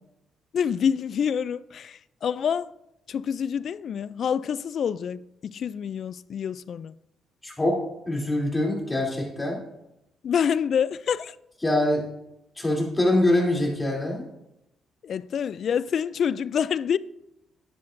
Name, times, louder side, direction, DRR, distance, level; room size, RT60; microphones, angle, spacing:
voice 1, 0.5-2.7 3.1-6.9 10.2-11.4 15.0-17.0, left 7 dB, 60° left, 0.3 m, -27 dB
voice 2, 7.4-7.8 8.1-9.6 11.6-12.1 12.6-14.2, left 1 dB, 15° left, 3.1 m, -24 dB
11.0 x 10.0 x 2.6 m
cardioid pair, 95°, 0 cm